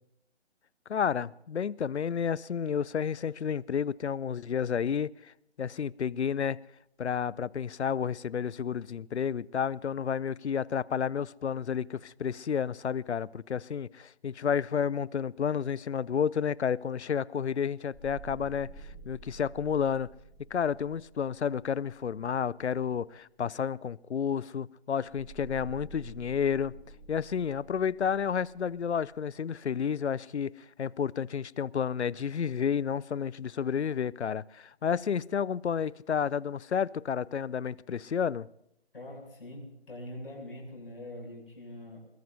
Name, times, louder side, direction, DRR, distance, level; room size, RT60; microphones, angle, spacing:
voice 1, 0.9-5.3 5.6-6.6 7.0-18.7 19.1-20.1 20.5-26.7 27.1-30.5 30.8-38.5, left 7 dB, 80° left, 0.5 m, -31 dB
sound 1, 17.9-22.3 25.1-29.2, right 4 dB, ahead, 1.9 m, -49 dB
voice 2, 38.9-42.0, left 1 dB, 55° left, 7.5 m, -43 dB
22.0 x 21.0 x 2.7 m
figure-of-eight pair, 155°, 33 cm